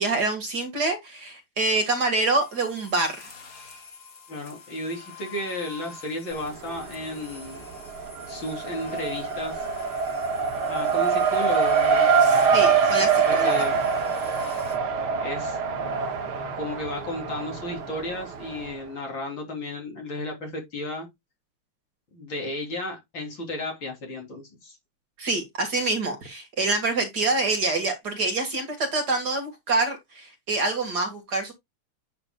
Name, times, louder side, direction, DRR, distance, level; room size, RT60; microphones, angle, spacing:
voice 1, 0.0-3.3 12.2-13.6 25.2-31.5, right 3 dB, 50° right, 2.3 m, -26 dB
sound 1, 2.4-14.8, left 5 dB, 45° left, 2.0 m, -45 dB
voice 2, 4.3-7.7 8.3-9.7 10.7-12.1 12.8-13.8 15.2-15.6 16.6-21.1 22.1-24.8, left 1 dB, 60° left, 4.0 m, -33 dB
Race car auto racing, 6.3-7.1 7.4-18.7, right 5 dB, 75° right, 2.3 m, -24 dB
10.0 x 6.6 x 2.3 m
omnidirectional pair, 2.4 m